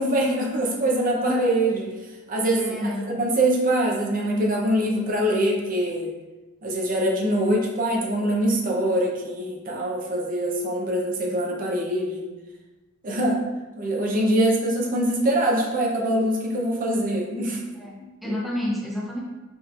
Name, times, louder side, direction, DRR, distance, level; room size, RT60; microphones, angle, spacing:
voice 1, 0.0-1.9 2.3-6.1 6.6-12.3 13.0-13.4 13.8-17.6 18.2-18.3, right 1 dB, 45° right, -2 dB, 0.8 m, -23 dB
voice 2, 2.6-3.2 17.8-19.2, left 1 dB, ahead, -5 dB, 0.5 m, -30 dB
5.0 x 3.1 x 2.5 m, 1.1 s
head